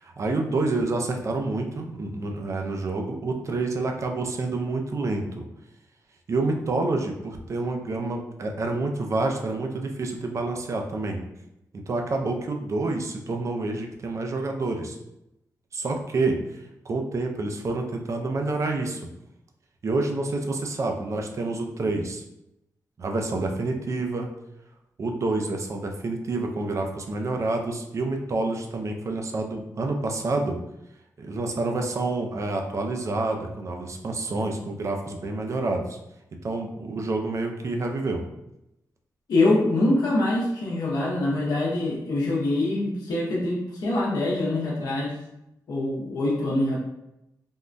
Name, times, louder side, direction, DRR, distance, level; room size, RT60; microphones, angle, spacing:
voice 1, 0.0-5.4 6.3-11.2 11.9-15.0 15.7-16.4 16.8-19.0 19.8-22.2 23.0-24.3 25.0-30.6 31.2-36.0 36.4-38.2, right 2 dB, 50° right, 3 dB, 0.5 m, -28 dB
voice 2, 39.3-45.2 45.7-46.8, left 2 dB, 85° left, -5 dB, 0.7 m, -24 dB
3.5 x 2.1 x 2.5 m, 0.87 s
cardioid pair, 100°, 7 cm